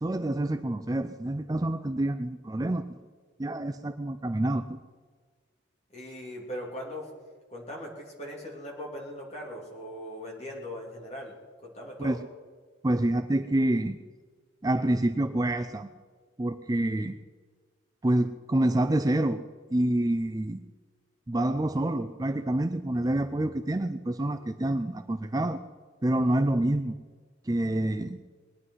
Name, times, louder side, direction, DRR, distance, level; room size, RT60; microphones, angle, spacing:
voice 1, 0.0-2.8 3.4-4.8 12.0-12.2 12.8-14.0 14.6-15.9 16.4-17.2 18.0-19.4 19.7-20.7 21.3-25.6 26.0-27.0 27.4-28.2, right 1 dB, 20° right, 9 dB, 0.4 m, -27 dB
voice 2, 5.9-7.1 7.5-11.3 11.6-12.2, equal, 35° left, -2 dB, 3.2 m, -39 dB
21.0 x 9.7 x 5.7 m, 1.5 s
head